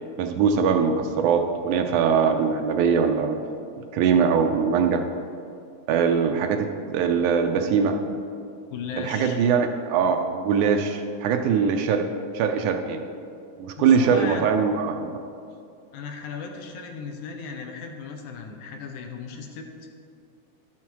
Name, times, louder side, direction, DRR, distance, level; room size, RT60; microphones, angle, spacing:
voice 1, 0.2-3.4 3.8-5.0 5.9-8.0 9.0-12.1 12.3-13.0 13.6-15.1, right 6 dB, 80° right, 5 dB, 2.0 m, -22 dB
voice 2, 8.7-9.4 13.8-14.5 15.9-19.7, left 5 dB, 75° left, 4 dB, 2.1 m, -36 dB
11.5 x 7.2 x 4.6 m, 2.4 s
omnidirectional pair, 3.7 m